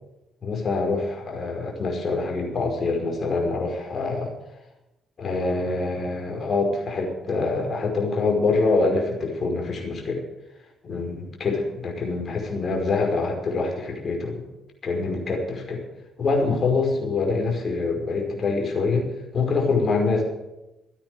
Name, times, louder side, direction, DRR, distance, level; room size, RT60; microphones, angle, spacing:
voice 1, 0.4-4.3 5.2-10.2 10.8-14.4 14.8-15.8 16.2-20.2, left 3 dB, 45° left, 1 dB, 5.4 m, -25 dB
14.5 x 9.8 x 9.2 m, 0.98 s
figure-of-eight pair, 45°, 0 cm